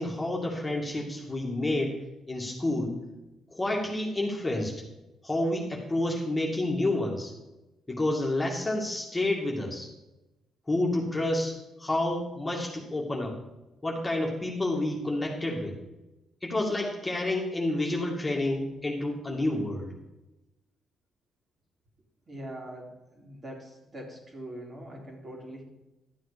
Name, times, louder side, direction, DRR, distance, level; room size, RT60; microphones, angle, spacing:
voice 1, 0.0-2.0 2.3-2.9 3.5-4.8 5.2-7.3 7.9-9.9 10.7-13.4 13.8-15.8 16.4-19.9, left 1 dB, 15° left, -1 dB, 2.2 m, -29 dB
voice 2, 22.3-25.6, right 1 dB, 35° right, -1 dB, 3.3 m, -42 dB
12.5 x 7.6 x 5.1 m, 1.0 s
cardioid pair, 90°, 0 cm